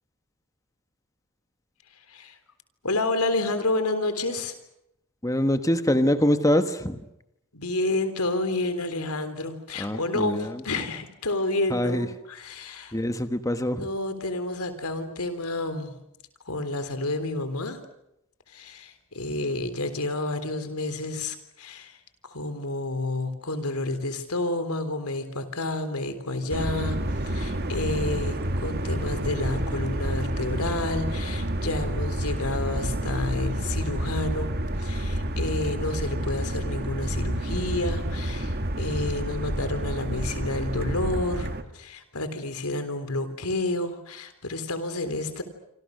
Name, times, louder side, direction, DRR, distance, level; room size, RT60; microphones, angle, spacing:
voice 1, 2.8-4.5 7.5-12.9 13.7-16.0 16.5-17.8 18.5-22.0 22.2-27.0 27.2-34.5 34.8-45.4, left 2 dB, 90° left, 10 dB, 3.6 m, -30 dB
voice 2, 5.2-7.0 9.8-10.9 11.7-12.1 12.9-13.9, left 1 dB, 15° left, 9 dB, 1.2 m, -24 dB
sound 1, 26.5-41.6, right 1 dB, 45° right, 1.9 m, -29 dB
27.0 x 26.5 x 6.5 m, 0.82 s
head